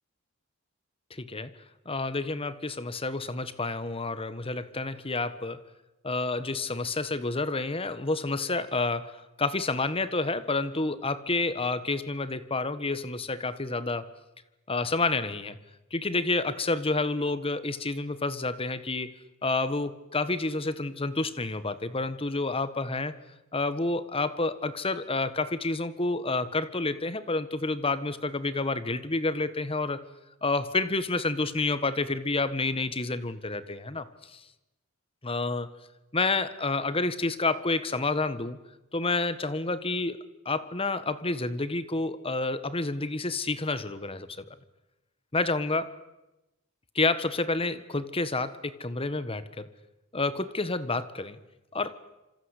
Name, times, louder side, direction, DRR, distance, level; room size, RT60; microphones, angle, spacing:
voice 1, 1.1-1.5 1.8-5.6 6.0-14.1 14.7-15.6 15.9-23.2 23.5-30.0 30.4-34.4 35.2-35.7 36.1-38.6 38.9-44.5 45.3-46.0 46.9-49.7 50.1-51.4 51.7-52.0, left 3 dB, 25° left, 14 dB, 1.4 m, -29 dB
26.5 x 26.0 x 8.3 m, 1.0 s
head